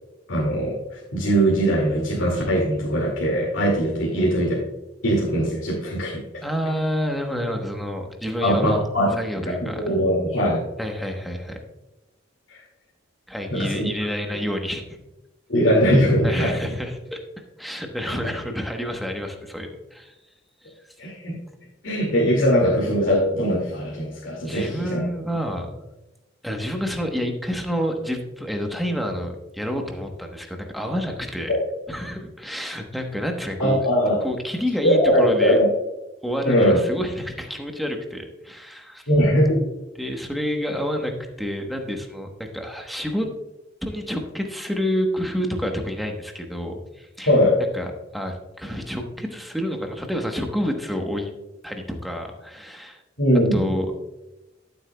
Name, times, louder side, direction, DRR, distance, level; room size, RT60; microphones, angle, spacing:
voice 1, 0.3-4.6 5.0-6.4 8.4-9.1 9.4-10.6 13.5-13.9 15.5-16.6 18.0-18.2 21.0-21.4 21.8-25.1 33.6-34.2 34.8-35.7 36.5-36.8 39.1-39.6 47.3-47.6 53.2-53.7, equal, 85° left, -4 dB, 2.2 m, -20 dB
voice 2, 6.4-8.8 9.1-10.0 10.8-11.6 13.3-15.0 16.2-17.2 17.6-20.1 20.6-20.7 24.4-25.8 26.4-31.5 31.9-33.8 34.2-35.6 36.2-39.1 40.0-41.1 41.4-43.3 43.8-47.3 47.7-47.9 48.1-51.3 51.6-53.0 53.5-53.9, equal, ahead, 3 dB, 1.1 m, -28 dB
12.5 x 7.8 x 2.3 m, 1.0 s
head